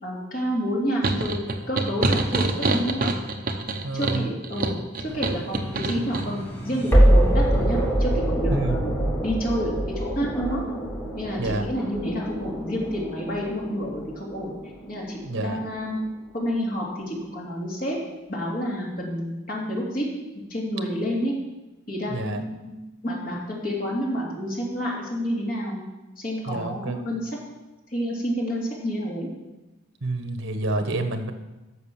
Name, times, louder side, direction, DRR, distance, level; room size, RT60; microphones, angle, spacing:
voice 1, 0.0-1.4 1.7-3.1 3.9-10.6 11.1-14.5 14.9-16.0 16.3-18.0 18.3-20.0 20.5-21.3 21.9-25.8 26.2-27.3 27.9-29.3, equal, 45° left, -4 dB, 3.2 m, -29 dB
sound 1, 1.0-6.3, right 2 dB, 45° right, 0.9 m, -26 dB
voice 2, 3.8-4.3 8.5-8.9 11.4-11.6 15.2-15.6 22.1-22.4 26.5-27.0 30.0-31.3, right 2 dB, 80° right, 7 dB, 1.3 m, -28 dB
sound 2, 5.1-16.1, right 1 dB, 10° left, 1.5 m, -25 dB
10.5 x 6.6 x 7.2 m, 1.1 s
head